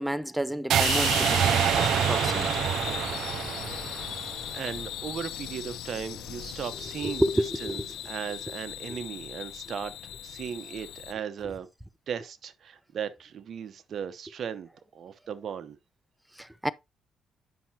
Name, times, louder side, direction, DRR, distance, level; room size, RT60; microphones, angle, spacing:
voice 1, 0.0-2.6 7.0-7.9 8.9-9.0 16.4-16.7, equal, 5° right, 0.5 m, -30 dB
sound 1, 0.7-4.7, right 10 dB, 75° right, 0.4 m, -26 dB
sound 2, 0.8-11.1, left 11 dB, 85° left, 0.9 m, -36 dB
voice 2, 4.5-7.3 7.6-9.9 10.2-11.7 12.1-15.8, right 8 dB, 60° right, 1.0 m, -37 dB
9.4 x 5.7 x 2.8 m
cardioid pair, 90°, 0 cm